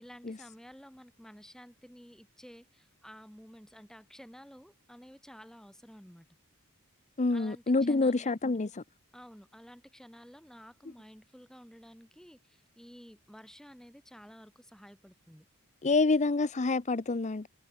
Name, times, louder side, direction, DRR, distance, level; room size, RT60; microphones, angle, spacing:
voice 1, 0.0-6.3 7.3-8.3 9.1-15.4, equal, ahead, 6.4 m, -52 dB
voice 2, 7.2-8.8 15.8-17.5, left 3 dB, 30° left, 0.7 m, -27 dB
head